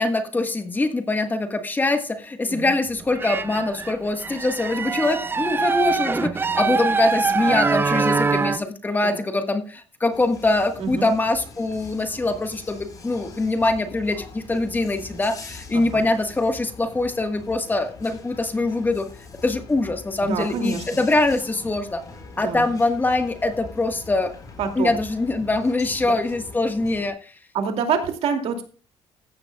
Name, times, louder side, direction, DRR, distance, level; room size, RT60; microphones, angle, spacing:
voice 1, 0.0-19.1 19.4-22.0 22.4-24.3 24.8-27.3, left 2 dB, 15° left, 6 dB, 1.4 m, -23 dB
sound 1, 3.0-3.9 4.2-8.6, right 4 dB, 20° right, 0.5 m, -23 dB
sound 2, 10.1-27.1, left 3 dB, 35° left, 4.2 m, -42 dB
voice 2, 20.2-20.8 22.4-22.7 24.6-24.9 26.0-26.1 27.5-28.6, right 6 dB, 65° right, 4 dB, 2.6 m, -26 dB
15.0 x 11.0 x 2.3 m, 0.37 s
cardioid pair, 140°, 11 cm